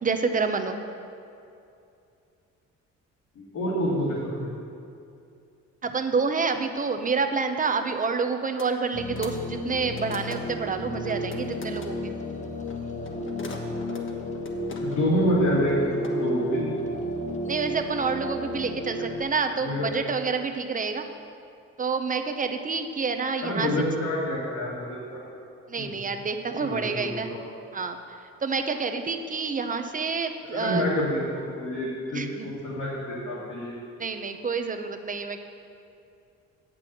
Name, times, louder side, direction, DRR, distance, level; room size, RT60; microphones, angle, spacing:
voice 1, 0.0-0.8 5.8-12.1 17.5-21.0 21.8-23.7 25.7-27.3 27.7-28.0 28.4-30.8 32.1-32.5 34.0-35.4, right 4 dB, 25° right, 6 dB, 0.8 m, -28 dB
voice 2, 3.4-4.5 14.8-16.6 19.6-19.9 23.4-25.2 25.8-25.9 26.6-27.4 30.4-33.7, equal, 70° left, -9 dB, 2.4 m, -27 dB
sound 1, 8.6-8.7 9.0-10.7 11.0-11.9 12.7-15.2 15.4-16.1, left 3 dB, 40° left, 1.2 m, -42 dB
sound 2, 8.9-19.2, equal, 25° left, 0.9 m, -32 dB
8.1 x 6.1 x 7.7 m, 2.6 s
cardioid pair, 90°, 30 cm